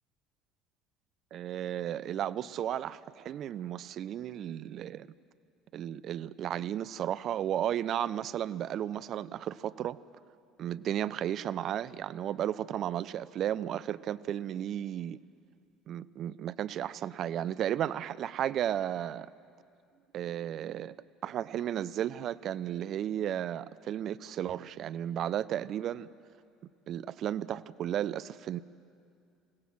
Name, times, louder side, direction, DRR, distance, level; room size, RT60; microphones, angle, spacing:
voice 1, 1.3-5.1 5.7-10.0 10.6-15.2 15.9-19.3 20.1-20.9 21.2-26.1 26.9-28.6, right 10 dB, 50° right, 17 dB, 0.5 m, -34 dB
28.0 x 17.0 x 6.1 m, 2.4 s
hypercardioid pair, 65°, 0 cm